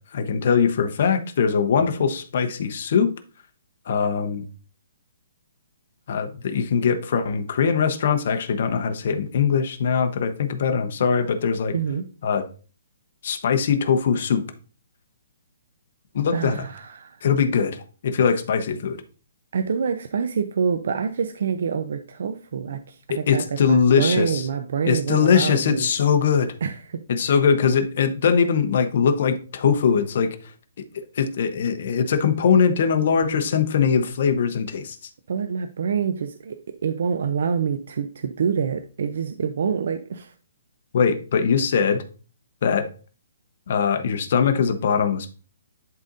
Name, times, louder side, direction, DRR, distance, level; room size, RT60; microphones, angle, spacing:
voice 1, 0.1-3.1 3.9-4.4 6.1-11.7 12.2-12.4 13.2-14.4 16.1-16.6 17.2-19.0 23.1-24.5 24.8-26.5 27.1-30.4 30.9-35.0 40.9-42.0 42.6-42.9 43.7-45.3, left 6 dB, 55° left, 0.9 m, -21 dB
voice 2, 11.7-12.1 16.3-17.2 19.5-25.9 26.6-27.3 35.3-40.3, right 6 dB, 65° right, 0.6 m, -26 dB
11.0 x 4.0 x 2.6 m
hypercardioid pair, 155°, 0 cm